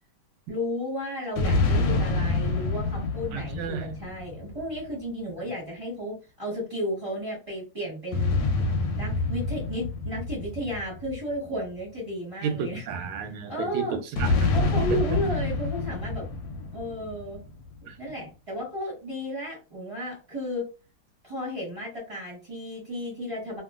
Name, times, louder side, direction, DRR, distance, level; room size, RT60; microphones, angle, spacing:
voice 1, 0.5-8.4 8.9-12.8 13.5-14.0 14.5-16.3 16.7-17.4 17.8-20.7 21.2-23.6, equal, 20° right, 1.3 m, -33 dB
sound 1, 1.4-5.0 8.1-11.8 14.2-17.6, left 3 dB, 70° left, 1.2 m, -27 dB
voice 2, 3.3-3.9 12.4-14.5 14.9-15.0 17.9-18.0, right 6 dB, 85° right, 1.4 m, -32 dB
2.9 x 2.9 x 2.3 m
omnidirectional pair, 2.3 m